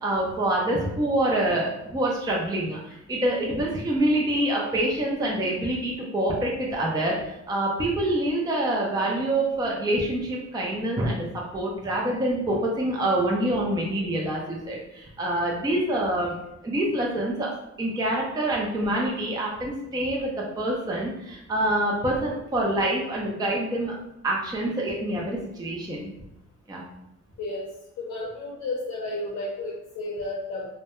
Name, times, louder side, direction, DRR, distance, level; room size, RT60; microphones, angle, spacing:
voice 1, 0.0-16.4 16.6-17.5 17.8-23.9 24.2-26.1 26.7-26.8, right 1 dB, 15° right, -3 dB, 0.5 m, -26 dB
voice 2, 28.0-30.7, left 2 dB, 65° left, -3 dB, 0.7 m, -32 dB
2.2 x 2.1 x 2.9 m, 0.85 s
cardioid pair, 90°, 30 cm